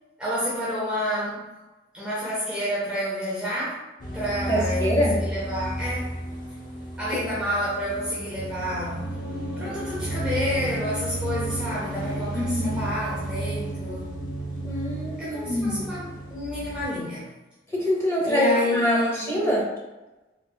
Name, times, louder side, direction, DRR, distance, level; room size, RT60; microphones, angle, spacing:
voice 1, 0.2-1.5 1.9-3.8 4.1-6.1 7.0-9.0 9.6-14.1 15.2-17.3 18.3-19.3, equal, 5° right, -8 dB, 0.7 m, -29 dB
sound 1, 4.0-16.8, right 1 dB, 50° left, 0.8 m, -32 dB
voice 2, 4.5-5.2 7.3-7.4 12.3-12.8 14.6-15.9 17.7-19.7, left 1 dB, 15° left, -5 dB, 1.0 m, -25 dB
3.6 x 3.2 x 2.3 m, 1.1 s
head